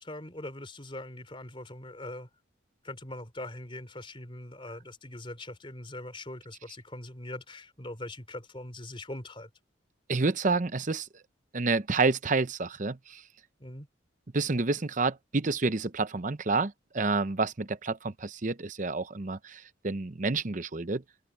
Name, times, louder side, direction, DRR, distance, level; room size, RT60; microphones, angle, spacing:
voice 1, 0.0-2.3 2.8-9.5 13.6-13.9, left 1 dB, 30° left, 3.4 m, -42 dB
voice 2, 10.1-11.1 11.5-13.2 14.3-21.0, right 3 dB, 40° right, 0.8 m, -29 dB
open air
head